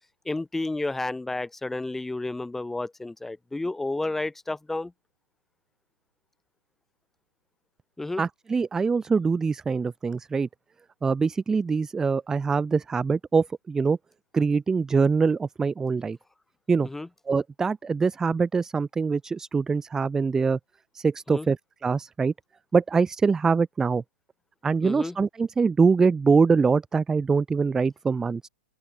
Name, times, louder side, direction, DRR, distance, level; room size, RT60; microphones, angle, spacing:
voice 1, 0.2-4.9 8.0-8.2 16.8-17.1 21.3-21.5 24.8-25.2, left 2 dB, 5° left, 1.1 m, -31 dB
voice 2, 8.2-10.5 11.0-14.0 14.3-16.2 16.7-16.9 17.3-20.6 20.9-21.6 21.8-22.3 22.7-24.0 24.6-28.4, right 5 dB, 10° right, 0.4 m, -23 dB
open air
hypercardioid pair, 120°, 5 cm